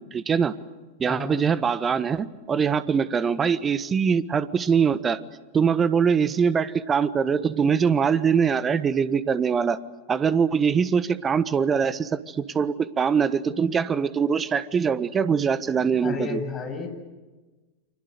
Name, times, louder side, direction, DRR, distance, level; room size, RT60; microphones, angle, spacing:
voice 1, 0.1-0.5 1.0-5.2 5.5-9.8 10.1-16.4, right 6 dB, 20° right, 15 dB, 1.3 m, -23 dB
voice 2, 1.1-1.4 16.0-16.9, left 4 dB, 25° left, 4 dB, 7.9 m, -32 dB
29.5 x 25.5 x 6.7 m, 1.2 s
figure-of-eight pair, 90°, 0 cm